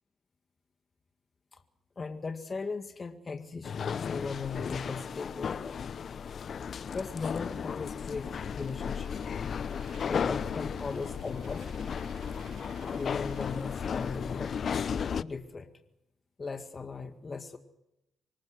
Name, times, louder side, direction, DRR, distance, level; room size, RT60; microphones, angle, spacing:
voice 1, 2.0-5.8 6.9-9.1 10.1-11.6 12.9-14.7 15.2-15.7 16.4-17.6, left 4 dB, 35° left, 7 dB, 2.0 m, -38 dB
sound 1, 3.6-15.2, left 7 dB, 55° left, 0.8 m, -34 dB
sound 2, 8.2-14.2, right 9 dB, 65° right, 1.2 m, -54 dB
25.0 x 20.5 x 6.6 m, 0.85 s
hypercardioid pair, 50°, 0 cm